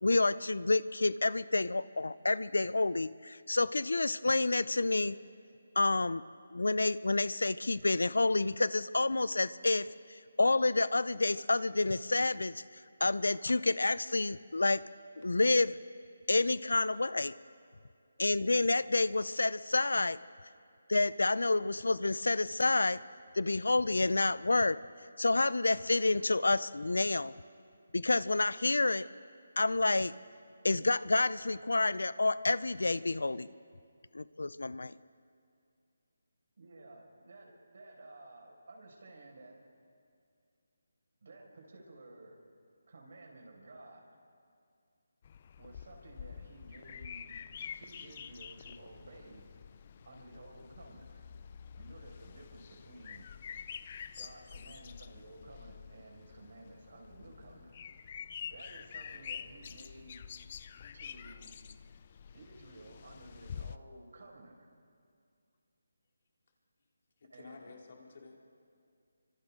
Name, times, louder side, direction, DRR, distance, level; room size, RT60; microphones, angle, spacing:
voice 1, 0.0-5.2 5.8-6.2 6.5-12.6 13.0-14.8 15.2-15.8 16.3-17.3 18.2-20.2 20.9-23.0 23.3-24.8 25.2-27.4 27.9-29.0 29.6-30.1 30.6-33.5 34.1-35.0, left 2 dB, 85° left, 18 dB, 0.6 m, -29 dB
voice 2, 36.6-39.6 41.2-42.4 42.9-44.0 45.6-47.4 47.7-49.5 50.0-51.2 51.8-53.3 54.2-57.8 58.5-60.2 60.9-61.6 62.3-64.7 67.3-67.8, right 2 dB, 60° right, 0 dB, 5.4 m, -53 dB
sound 1, 45.2-63.8, left 7 dB, 35° left, 0.5 m, -47 dB
voice 3, 67.2-68.4, left 4 dB, 50° left, 0 dB, 3.2 m, -52 dB
27.5 x 25.0 x 3.8 m, 2.4 s
figure-of-eight pair, 165°, 0 cm